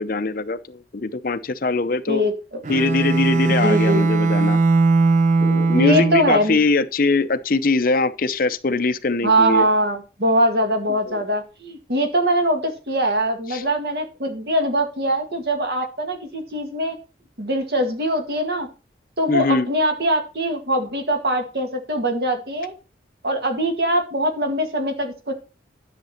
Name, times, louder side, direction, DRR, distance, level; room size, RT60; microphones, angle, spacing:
voice 1, 0.0-2.2 2.7-4.6 5.4-9.7 11.1-11.2 13.5-13.6 19.3-19.7, left 3 dB, 50° left, 0.6 m, -22 dB
voice 2, 2.1-2.6 3.6-4.0 5.7-6.6 9.2-17.0 17.4-18.7 19.2-22.7 23.2-25.3, right 1 dB, 60° right, 2.0 m, -22 dB
Bowed string instrument, 2.6-6.5, right 3 dB, 40° right, 0.6 m, -19 dB
10.5 x 6.7 x 4.3 m
head